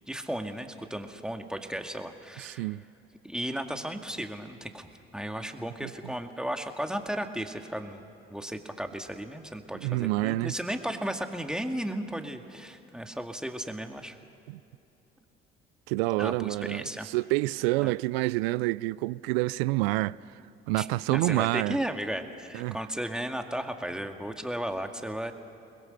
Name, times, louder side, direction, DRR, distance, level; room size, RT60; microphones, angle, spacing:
voice 1, 0.1-2.7 3.2-14.2 16.2-17.1 17.8-17.9 20.8-25.3, right 1 dB, ahead, 2.1 m, -35 dB
voice 2, 2.4-2.8 5.8-5.9 9.8-10.5 14.5-14.6 15.9-20.2 20.7-21.8 22.5-22.8, right 20 dB, 80° right, 0.5 m, -28 dB
29.0 x 21.5 x 6.7 m
hypercardioid pair, 55°, 30 cm